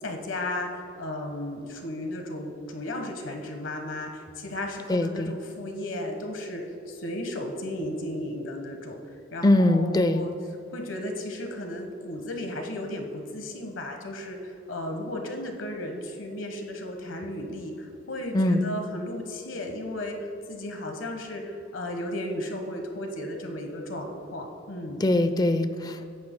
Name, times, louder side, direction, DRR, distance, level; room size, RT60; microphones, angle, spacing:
voice 1, 0.0-10.3 10.7-25.0, left 1 dB, 80° left, 3 dB, 1.3 m, -35 dB
voice 2, 4.9-5.3 9.4-10.3 18.3-18.6 25.0-26.0, left 1 dB, 20° left, 10 dB, 0.4 m, -22 dB
14.5 x 9.5 x 2.2 m, 2.7 s
head